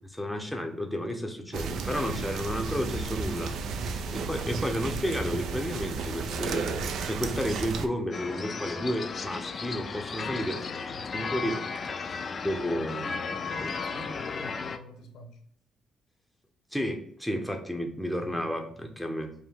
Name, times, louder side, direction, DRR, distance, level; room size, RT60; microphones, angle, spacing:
voice 1, 0.1-3.5 4.1-10.6 11.1-11.6 12.4-13.1 13.6-14.0 16.7-19.3, equal, ahead, 3 dB, 0.7 m, -32 dB
sound 1, 1.5-7.9, right 4 dB, 75° right, 0.4 m, -33 dB
voice 2, 3.7-4.1 10.2-11.3 11.8-11.9 13.1-15.4 18.2-18.3, left 2 dB, 80° left, 4 dB, 0.8 m, -46 dB
sound 2, 8.1-14.8, left 5 dB, 45° left, 0.4 m, -35 dB
5.2 x 2.1 x 3.5 m, 0.67 s
cardioid pair, 90°, 0 cm